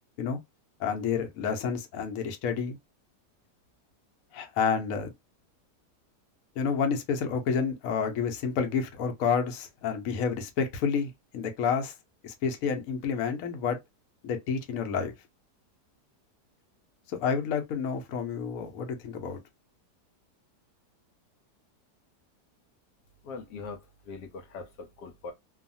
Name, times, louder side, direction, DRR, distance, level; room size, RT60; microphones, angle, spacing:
voice 1, 0.8-2.8 4.3-5.1 6.6-11.9 12.2-13.8 14.2-15.1 17.1-19.4, left 6 dB, 65° left, 1.0 m, -29 dB
voice 2, 23.2-25.3, left 4 dB, 80° left, 1.2 m, -42 dB
2.7 x 2.4 x 2.6 m
omnidirectional pair, 1.8 m